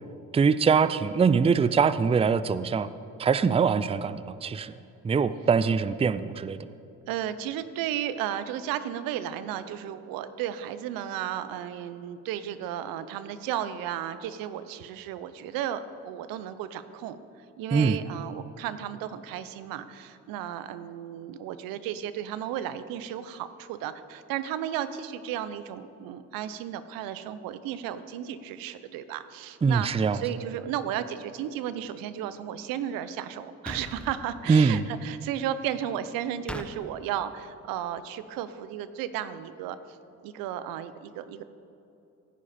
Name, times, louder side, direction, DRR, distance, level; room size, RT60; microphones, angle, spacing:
voice 1, 0.3-2.9 3.2-4.7 5.0-6.7 17.7-18.0 29.6-30.2 34.5-34.9, right 5 dB, 20° right, 14 dB, 0.4 m, -23 dB
voice 2, 7.1-40.0 40.2-41.4, right 10 dB, 80° right, 13 dB, 0.7 m, -34 dB
sound 1, 33.7-34.2 36.5-36.7, left 1 dB, 5° left, 1.0 m, -37 dB
16.0 x 9.9 x 4.3 m, 2.7 s
supercardioid pair, 60°, 34 cm